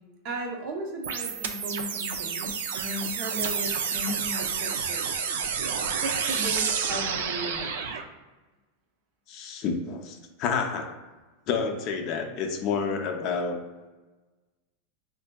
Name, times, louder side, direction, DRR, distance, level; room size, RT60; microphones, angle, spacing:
voice 1, 0.2-5.1 6.0-7.7, right 1 dB, 40° right, 2 dB, 0.6 m, -36 dB
sound 1, 1.0-8.0, right 6 dB, 80° right, 0.4 m, -29 dB
voice 2, 9.3-10.9 11.5-13.6, left 5 dB, 35° left, 3 dB, 0.5 m, -29 dB
5.4 x 2.6 x 2.2 m, 1.2 s
supercardioid pair, 165°, 0 cm